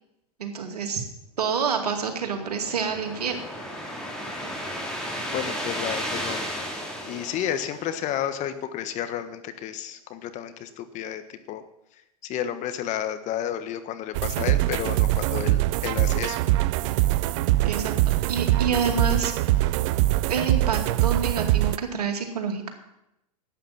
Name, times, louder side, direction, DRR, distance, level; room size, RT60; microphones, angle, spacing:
voice 1, 0.4-1.0 1.4-3.4 17.6-17.9 18.3-19.3 20.3-22.7, right 6 dB, 80° right, 5 dB, 2.4 m, -27 dB
sound 1, 1.7-8.3, equal, 5° left, 3.4 m, -34 dB
voice 2, 5.3-6.5 7.0-11.6 12.2-16.4, left 10 dB, 40° left, 10 dB, 1.4 m, -31 dB
sound 2, 14.1-21.8, right 16 dB, 55° right, 0.6 m, -23 dB
11.5 x 9.0 x 7.4 m, 0.86 s
hypercardioid pair, 105°, 20 cm